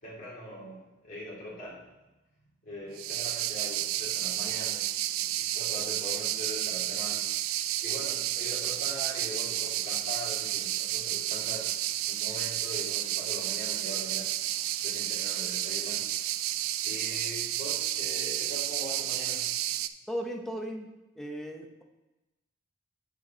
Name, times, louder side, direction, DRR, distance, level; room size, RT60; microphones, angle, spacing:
voice 1, 0.0-1.9 2.6-7.2 7.8-11.7 12.1-14.3 14.8-16.0 16.8-19.5, equal, 40° left, -7 dB, 3.1 m, -42 dB
sound 1, 3.0-19.9, right 13 dB, 80° right, 0.4 m, -31 dB
voice 2, 20.1-20.9 21.2-21.8, equal, ahead, 2 dB, 0.8 m, -36 dB
7.9 x 6.6 x 4.0 m, 1.0 s
head